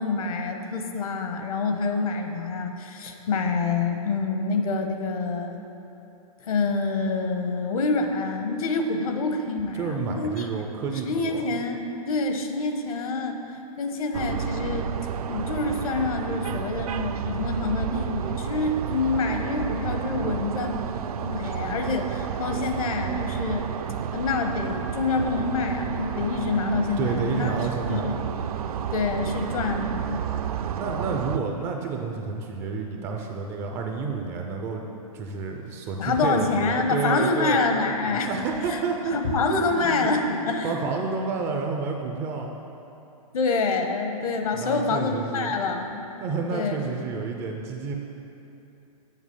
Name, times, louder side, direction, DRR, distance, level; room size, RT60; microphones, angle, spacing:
voice 1, 0.0-5.6 6.4-10.5 11.1-13.4 13.8-14.8 15.3-20.8 21.2-23.7 24.1-27.6 27.9-28.2 28.9-30.2 36.0-38.3 38.7-40.7 43.3-46.8, left 3 dB, 65° left, 5 dB, 1.1 m, -27 dB
voice 2, 9.8-11.5 27.0-28.2 30.8-34.8 35.1-37.6 38.3-40.1 40.6-42.5 44.5-45.5 46.2-48.0, right 5 dB, 15° right, 2 dB, 0.3 m, -30 dB
sound 1, 14.1-31.4, right 8 dB, 70° right, 0.5 m, -31 dB
7.3 x 6.0 x 7.1 m, 2.9 s
hypercardioid pair, 155°, 19 cm